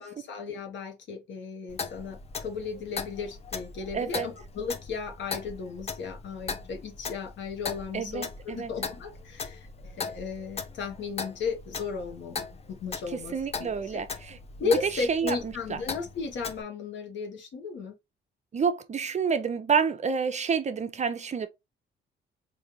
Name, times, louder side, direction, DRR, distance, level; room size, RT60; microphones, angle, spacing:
voice 1, 0.0-9.7 10.0-12.4 12.7-14.0 14.6-17.9, left 5 dB, 70° left, 1.2 m, -35 dB
Clock, 1.7-16.6, left 4 dB, 30° left, 0.6 m, -39 dB
voice 2, 3.9-4.3 7.9-8.7 13.1-14.7 15.1-15.8 18.5-21.5, right 6 dB, 35° right, 0.5 m, -29 dB
3.8 x 2.6 x 2.9 m
cardioid pair, 90°, 20 cm